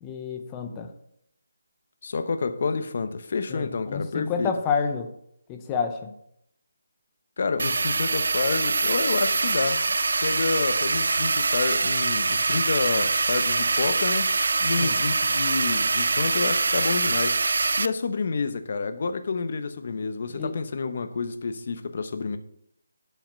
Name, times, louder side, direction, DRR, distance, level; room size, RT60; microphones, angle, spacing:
voice 1, 0.0-0.9 3.5-5.1 5.5-6.1 14.8-15.0 20.3-20.6, left 6 dB, 15° left, 0.8 m, -29 dB
voice 2, 2.0-4.5 7.4-9.8 10.2-14.3 14.6-17.4 17.8-22.4, left 4 dB, 45° left, 0.9 m, -29 dB
sound 1, 7.6-17.9, right 3 dB, 65° right, 0.4 m, -24 dB
12.0 x 5.8 x 5.2 m
hypercardioid pair, 175°, 0 cm